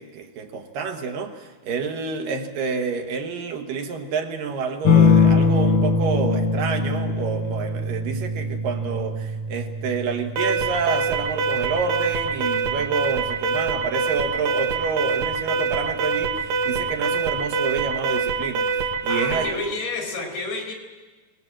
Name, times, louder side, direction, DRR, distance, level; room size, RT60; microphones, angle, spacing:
voice 1, 0.0-19.7, right 5 dB, 65° right, 5 dB, 2.8 m, -28 dB
sound 1, 4.9-13.9 15.4-15.9, left 4 dB, 65° left, 2.5 m, -23 dB
Alarm, 10.4-19.6, right 4 dB, 85° right, 4.0 m, -24 dB
voice 2, 19.1-20.7, left 3 dB, 80° left, 2 dB, 5.4 m, -29 dB
24.5 x 19.5 x 7.5 m, 1.3 s
omnidirectional pair, 4.4 m